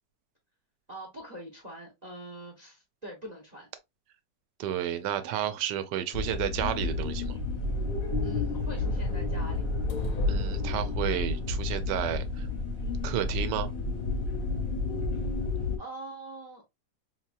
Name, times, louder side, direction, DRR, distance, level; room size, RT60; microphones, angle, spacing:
voice 1, 0.9-3.7 8.2-9.7 15.8-16.6, right 1 dB, 35° right, 0.7 m, -43 dB
voice 2, 4.6-7.4 10.3-12.5 13.0-13.7, right 10 dB, 80° right, 1.2 m, -31 dB
sound 1, 6.1-15.8, left 3 dB, 40° left, 0.9 m, -30 dB
sound 2, 9.9-11.5, left 5 dB, 75° left, 1.2 m, -47 dB
4.1 x 2.8 x 2.3 m
omnidirectional pair, 1.9 m